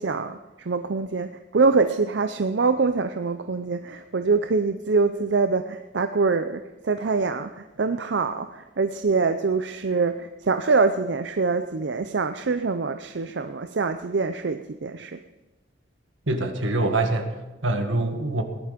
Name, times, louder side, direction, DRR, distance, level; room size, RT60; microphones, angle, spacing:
voice 1, 0.0-15.2, right 4 dB, 65° right, 9 dB, 0.6 m, -24 dB
voice 2, 16.3-18.4, right 2 dB, 90° right, 6 dB, 1.8 m, -25 dB
18.5 x 11.5 x 5.2 m, 1.2 s
head